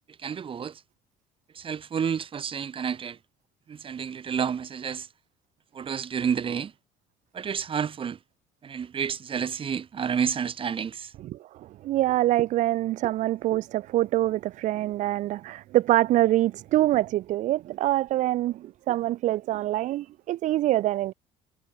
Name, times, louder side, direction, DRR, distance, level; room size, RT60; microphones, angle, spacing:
voice 1, 0.2-0.7 1.6-3.2 3.7-5.1 5.7-6.7 7.3-8.2 8.6-11.1, right 7 dB, 35° right, 2.3 m, -30 dB
voice 2, 11.2-21.1, right 15 dB, 55° right, 0.6 m, -25 dB
supercardioid pair, 90°, 15 cm